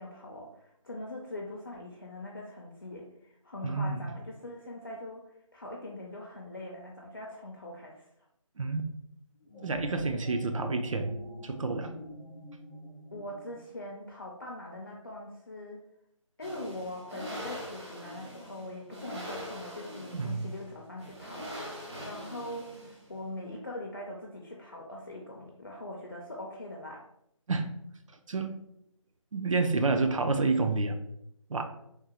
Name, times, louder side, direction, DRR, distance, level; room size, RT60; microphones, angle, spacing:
voice 1, 0.0-5.2 5.5-8.1 13.1-15.8 16.4-27.0, left 1 dB, 40° left, -1 dB, 0.4 m, -42 dB
voice 2, 3.6-4.1 8.6-8.8 9.6-11.2 11.4-11.9 20.1-20.5 27.5-27.7 28.3-28.5 29.3-31.0 31.5-31.6, right 3 dB, 70° right, 6 dB, 0.5 m, -29 dB
sound 1, 9.3-13.9, equal, 15° right, 0.5 m, -46 dB
sound 2, 16.4-23.2, equal, 55° right, 0.9 m, -42 dB
3.6 x 2.1 x 2.7 m, 0.77 s
figure-of-eight pair, 175°, 17 cm